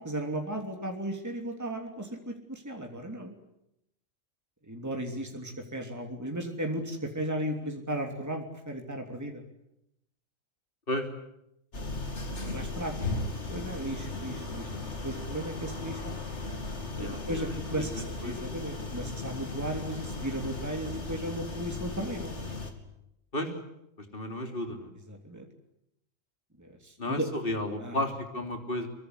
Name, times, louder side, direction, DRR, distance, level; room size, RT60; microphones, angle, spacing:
voice 1, 0.0-3.3 4.7-9.4 12.3-16.1 17.0-22.3 25.1-25.5 26.6-27.3 27.8-28.1, right 1 dB, 15° right, 3 dB, 3.1 m, -36 dB
sound 1, 11.7-22.7, left 3 dB, 60° left, 3.0 m, -36 dB
voice 2, 17.0-18.3 23.3-23.5 24.1-24.9 27.0-28.9, left 1 dB, 45° left, 5 dB, 3.7 m, -33 dB
25.0 x 23.0 x 9.9 m, 0.83 s
omnidirectional pair, 1.3 m